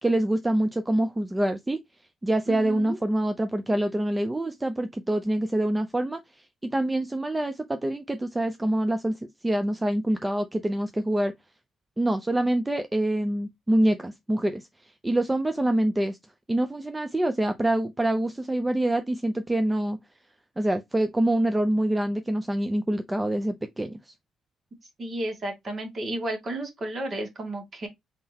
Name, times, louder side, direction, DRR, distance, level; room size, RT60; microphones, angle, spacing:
voice 1, 0.0-1.8 2.2-11.3 12.0-16.2 16.5-20.0 20.6-24.1, right 1 dB, 15° right, 0.5 m, -26 dB
voice 2, 2.5-3.0 25.0-27.9, right 1 dB, 40° right, 2.0 m, -32 dB
4.2 x 3.8 x 2.8 m
cardioid pair, 90°, 0 cm